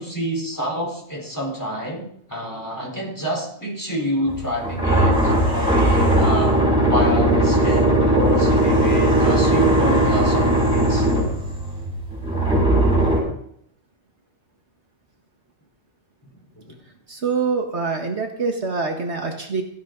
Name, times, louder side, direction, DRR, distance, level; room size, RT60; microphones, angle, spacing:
voice 1, 0.0-6.6 6.8-11.1 16.5-16.8, equal, 15° left, -1 dB, 4.5 m, -28 dB
sound 1, 4.3-13.2, right 1 dB, 5° right, 6.9 m, -18 dB
voice 2, 17.1-19.6, right 4 dB, 60° right, 3 dB, 1.9 m, -25 dB
16.5 x 15.0 x 4.0 m, 0.68 s
omnidirectional pair, 1.3 m